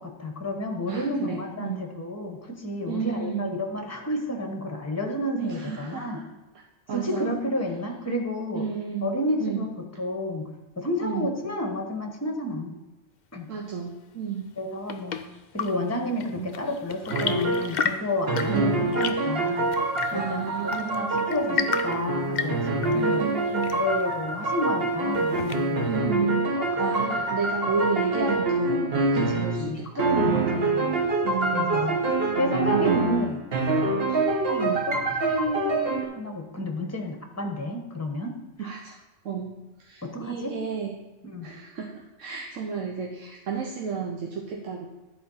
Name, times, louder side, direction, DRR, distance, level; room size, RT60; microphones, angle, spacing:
voice 1, 0.0-6.2 6.9-8.7 9.0-10.5 10.8-12.8 13.3-13.5 14.6-15.2 15.5-19.7 20.1-23.3 23.7-25.9 26.6-27.2 29.1-31.0 31.5-32.0 32.4-33.4 34.1-38.7 40.0-40.5 41.2-41.5, left 1 dB, 15° left, 3 dB, 1.1 m, -31 dB
voice 2, 0.9-2.0 2.9-3.5 5.4-6.2 6.9-7.3 8.5-9.1 9.4-9.6 11.0-11.3 13.5-14.5 16.4-16.5 18.4-18.8 20.1-21.3 22.9-23.7 25.8-26.5 26.8-29.9 30.3-30.5 31.2-31.9 32.7-33.0 34.5-34.9 38.6-39.0 39.2-40.9 41.4-44.9, right 6 dB, 80° right, 0 dB, 1.2 m, -32 dB
Chirp tweet / Engine / Tap, 14.4-26.0, left 6 dB, 55° left, 0.5 m, -34 dB
sound 1, 17.1-17.7 18.3-29.7 30.0-36.0, right 2 dB, 50° right, 1.3 m, -26 dB
11.0 x 4.4 x 5.6 m, 1.1 s
omnidirectional pair, 1.3 m